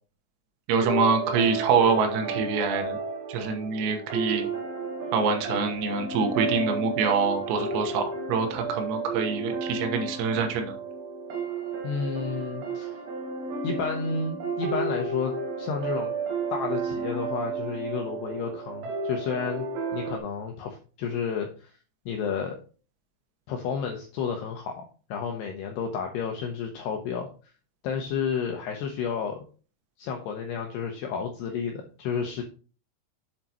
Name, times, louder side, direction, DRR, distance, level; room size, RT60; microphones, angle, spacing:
voice 1, 0.7-3.0 3.3-4.5 5.1-10.7, right 5 dB, 85° right, 5 dB, 3.9 m, -25 dB
sound 1, 0.8-20.2, right 4 dB, 65° right, 2.5 m, -32 dB
voice 2, 11.8-13.0 13.6-16.1 16.5-19.7 19.9-21.7 22.1-22.6 23.5-27.3 27.8-29.4 30.0-32.4, left 6 dB, 85° left, 2 dB, 2.3 m, -31 dB
8.1 x 7.5 x 2.9 m, 0.38 s
omnidirectional pair, 5.9 m